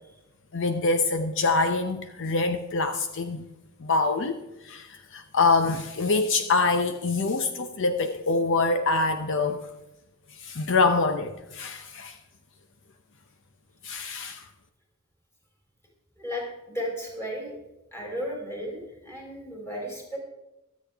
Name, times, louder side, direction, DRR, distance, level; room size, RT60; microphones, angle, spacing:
voice 1, 0.5-3.4 3.8-4.4 4.6-9.7 10.4-12.2 13.8-14.4, left 3 dB, 60° left, 8 dB, 0.8 m, -25 dB
voice 2, 16.2-17.5 17.9-20.2, equal, 10° left, -3 dB, 4.3 m, -34 dB
23.0 x 8.5 x 3.5 m, 0.98 s
head